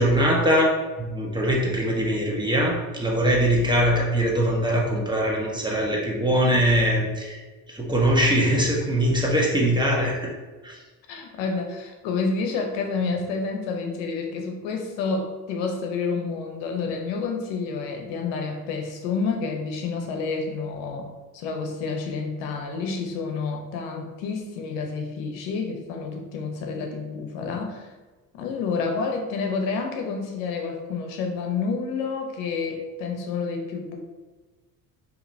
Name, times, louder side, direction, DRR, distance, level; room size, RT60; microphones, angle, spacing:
voice 1, 0.0-7.4 7.7-10.3 10.6-10.8, equal, 10° right, -2 dB, 1.1 m, -22 dB
voice 2, 11.1-21.1 21.3-27.9 28.3-34.0, left 4 dB, 80° left, 3 dB, 0.9 m, -29 dB
4.9 x 2.9 x 2.7 m, 1.2 s
supercardioid pair, 70°, 44 cm